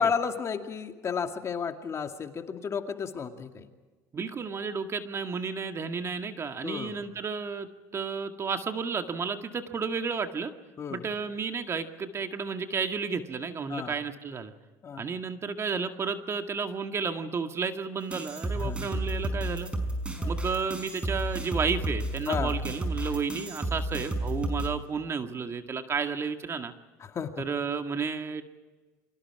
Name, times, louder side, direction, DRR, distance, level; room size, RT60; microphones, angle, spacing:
voice 1, 0.0-3.7 6.6-7.0 10.8-11.0 13.7-14.0 14.8-15.0 18.6-18.9 20.2-20.4 22.3-22.6 27.0-27.4, left 6 dB, 35° left, 5 dB, 2.3 m, -32 dB
voice 2, 4.1-10.5 10.9-14.5 15.0-19.7 20.3-26.7 27.4-28.4, right 5 dB, 35° right, 6 dB, 1.9 m, -32 dB
sound 1, 18.1-24.7, right 1 dB, 15° right, 5.5 m, -32 dB
28.5 x 24.0 x 4.8 m, 1.3 s
hypercardioid pair, 80°, 8 cm